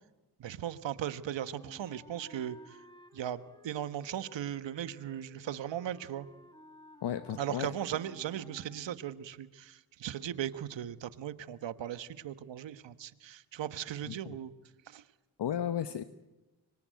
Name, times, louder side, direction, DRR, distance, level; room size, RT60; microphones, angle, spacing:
voice 1, 0.4-2.8 3.1-6.3 7.4-14.5 14.9-15.0, right 10 dB, 65° right, 13 dB, 1.4 m, -38 dB
Wind instrument woodwind instrument, 1.4-9.1, left 1 dB, 10° left, 4.0 m, -57 dB
voice 2, 7.0-7.7 14.1-14.4 15.4-16.0, left 9 dB, 60° left, 11 dB, 1.2 m, -34 dB
24.5 x 23.0 x 9.3 m, 1.1 s
supercardioid pair, 50°, 47 cm